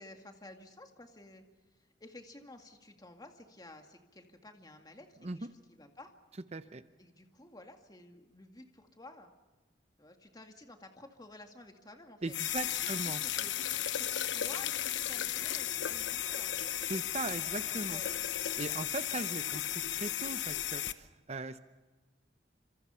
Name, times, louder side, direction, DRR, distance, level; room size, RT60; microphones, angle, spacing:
voice 1, 0.0-1.4 1.7-6.1 7.0-9.3 10.0-12.4 12.7-13.5 13.9-16.7 17.6-18.2, left 2 dB, 20° left, 4 dB, 2.1 m, -53 dB
voice 2, 6.5-6.8 12.2-13.2 16.9-18.0 18.6-21.6, right 3 dB, 35° right, 11 dB, 0.8 m, -39 dB
sound 1, 12.3-20.9, left 11 dB, 85° left, 1.0 m, -35 dB
28.5 x 26.5 x 5.7 m, 1.2 s
head